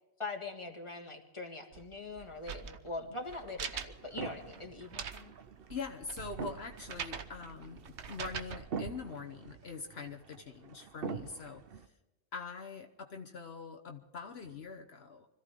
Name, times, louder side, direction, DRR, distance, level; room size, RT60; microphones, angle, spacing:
voice 1, 0.2-5.3, left 3 dB, 25° left, 2 dB, 2.0 m, -42 dB
sound 1, 1.7-8.6, right 7 dB, 85° right, 1.3 m, -44 dB
sound 2, 3.3-11.9, right 5 dB, 60° right, 1.1 m, -46 dB
voice 2, 5.7-11.9 12.3-15.3, left 4 dB, 70° left, 4 dB, 1.3 m, -44 dB
25.0 x 14.5 x 3.7 m, 1.0 s
omnidirectional pair, 1.1 m